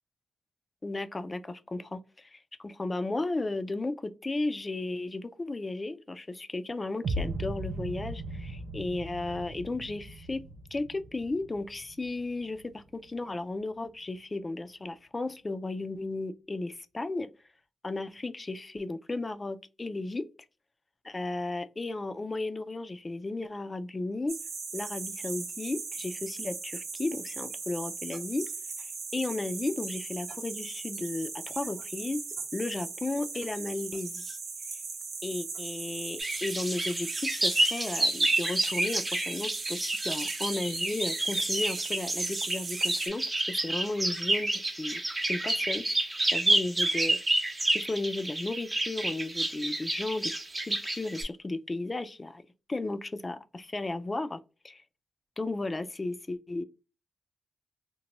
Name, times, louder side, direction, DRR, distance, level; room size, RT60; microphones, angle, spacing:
voice 1, 0.8-10.4 10.7-17.3 17.8-20.3 21.0-24.4 24.7-28.5 28.8-32.2 32.5-34.4 35.2-45.8 46.2-47.2 47.7-50.3 50.6-52.4 52.7-54.4 54.6-54.8 55.4-56.6, left 2 dB, 25° left, 0.3 m, -34 dB
sound 1, 7.0-13.0, right 2 dB, 65° right, 0.3 m, -38 dB
sound 2, 24.3-43.1, right 4 dB, 80° right, 0.8 m, -39 dB
sound 3, 36.2-51.2, right 2 dB, 25° right, 0.8 m, -29 dB
2.9 x 2.2 x 2.8 m
cardioid pair, 95°, 0 cm